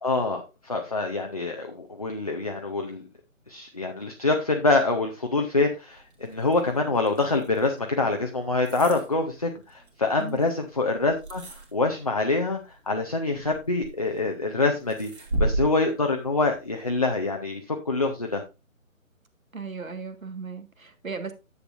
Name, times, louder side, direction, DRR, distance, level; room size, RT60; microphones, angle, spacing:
voice 1, 0.0-3.0 3.5-11.4 11.7-15.1 15.4-18.4, left 3 dB, 25° left, 0.7 m, -25 dB
sound 1, 5.9-17.3, right 2 dB, 50° right, 2.5 m, -36 dB
voice 2, 19.5-21.3, right 5 dB, 70° right, 1.8 m, -36 dB
10.0 x 8.0 x 2.5 m
figure-of-eight pair, 150°, 42 cm